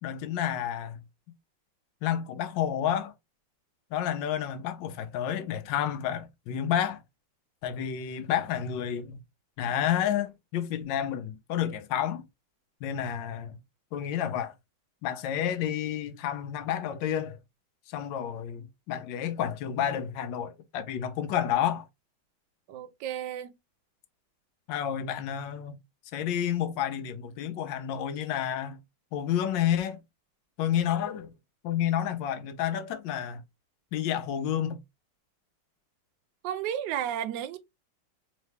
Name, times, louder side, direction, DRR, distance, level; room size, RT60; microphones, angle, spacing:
voice 1, 0.0-1.0 2.0-3.1 3.9-7.0 7.6-9.2 9.6-12.2 12.8-13.6 13.9-14.5 15.0-17.4 17.9-21.9 24.7-25.8 26.1-28.8 29.1-30.0 30.6-31.3 31.6-33.4 33.9-34.8, left 10 dB, 70° left, 1.3 m, -30 dB
voice 2, 22.7-23.5 36.4-37.6, right 10 dB, 75° right, 1.0 m, -33 dB
3.6 x 3.1 x 3.2 m
omnidirectional pair, 2.3 m